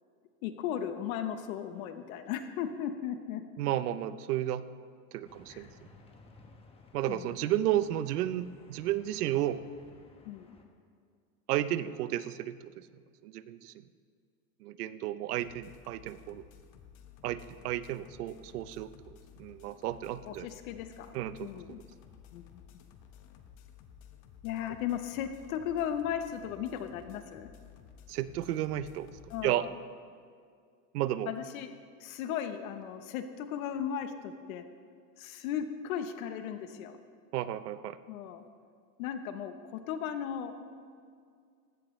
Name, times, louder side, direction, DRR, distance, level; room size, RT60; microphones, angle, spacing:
voice 1, 0.4-3.5 5.5-5.7 7.1-7.3 10.2-10.6 20.3-21.8 22.3-22.4 24.4-27.5 29.3-29.7 31.3-31.7 32.0-34.7 35.2-37.0 38.1-38.4 39.0-40.7, left 9 dB, 65° left, 8 dB, 1.1 m, -36 dB
voice 2, 3.6-4.7 5.1-5.7 6.9-9.6 11.5-12.9 13.2-13.7 14.6-16.4 17.2-20.5 21.1-21.5 28.1-29.1 29.4-29.7 30.9-31.3 37.3-38.0, right 13 dB, 90° right, 14 dB, 0.8 m, -32 dB
sound 1, 5.2-10.6, left 3 dB, 15° left, 1.1 m, -58 dB
sound 2, 15.4-29.5, left 8 dB, 40° left, 1.2 m, -55 dB
18.0 x 16.0 x 3.2 m, 2.2 s
supercardioid pair, 150°, 44 cm